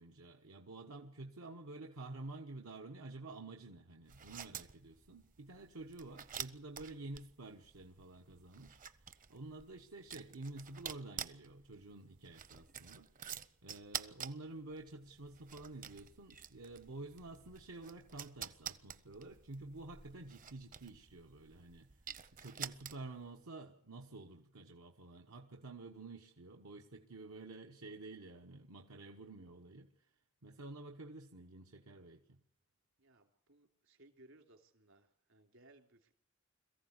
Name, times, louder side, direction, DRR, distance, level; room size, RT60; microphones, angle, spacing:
voice 1, 0.0-13.2 13.6-21.9 22.4-30.1 30.4-32.4, right 2 dB, 85° right, 1.3 m, -50 dB
sound 1, 4.0-23.3, right 8 dB, 40° right, 0.8 m, -49 dB
voice 2, 33.0-36.1, right 2 dB, 65° right, 3.2 m, -64 dB
22.5 x 15.0 x 8.1 m
head